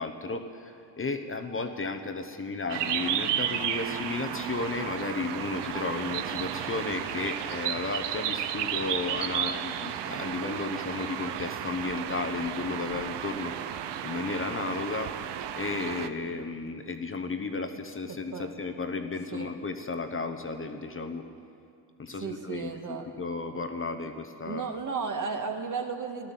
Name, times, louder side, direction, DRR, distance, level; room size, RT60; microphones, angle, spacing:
voice 1, 0.0-15.1 15.6-21.2 22.0-24.7, left 3 dB, 30° left, 7 dB, 1.0 m, -34 dB
sound 1, 2.7-16.1, right 10 dB, 70° right, 0.8 m, -33 dB
voice 2, 18.1-18.5 19.3-19.5 22.2-23.1 24.5-26.3, right 5 dB, 45° right, 4 dB, 1.7 m, -34 dB
14.0 x 11.5 x 7.5 m, 2.6 s
supercardioid pair, 75°, 45 cm